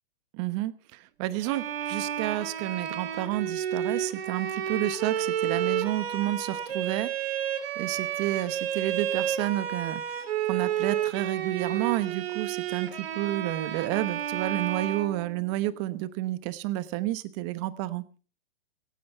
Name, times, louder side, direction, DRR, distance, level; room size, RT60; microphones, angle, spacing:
voice 1, 0.3-7.1 7.8-18.0, right 16 dB, 30° right, 15 dB, 1.0 m, -30 dB
Bowed string instrument, 1.4-15.7, right 9 dB, 70° right, 2.7 m, -31 dB
17.5 x 15.5 x 4.5 m, 0.36 s
hypercardioid pair, 155°, 32 cm